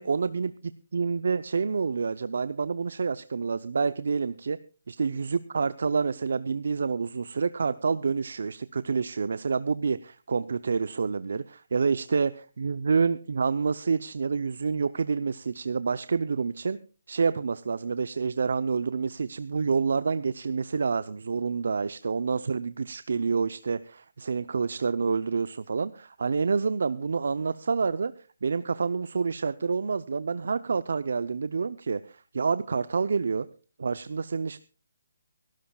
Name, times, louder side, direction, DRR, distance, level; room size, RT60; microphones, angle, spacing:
voice 1, 0.0-4.6 4.9-16.8 17.1-28.1 28.4-33.5 33.8-34.6, right 5 dB, 70° right, 14 dB, 0.6 m, -28 dB
24.0 x 12.5 x 2.3 m, 0.36 s
hypercardioid pair, 155°, 0 cm